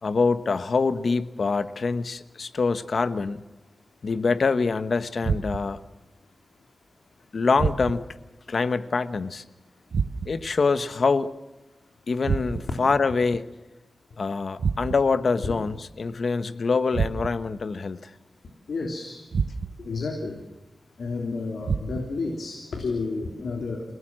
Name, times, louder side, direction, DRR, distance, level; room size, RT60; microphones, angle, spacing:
voice 1, 0.0-3.4 4.0-5.8 7.3-8.1 8.5-9.4 10.3-11.3 12.1-13.4 14.2-18.1, left 4 dB, 65° left, 12 dB, 1.1 m, -25 dB
sound 1, 5.2-5.9 7.6-8.2 9.9-10.5 12.2-12.9 14.6-15.2 16.9-17.6 19.3-19.9 21.6-22.3, right 5 dB, 75° right, 1.0 m, -29 dB
voice 2, 18.7-19.2 19.8-20.3 21.0-23.8, left 3 dB, 85° left, 2 dB, 3.4 m, -30 dB
29.0 x 18.0 x 7.6 m, 1.1 s
wide cardioid pair, 90°, 0 cm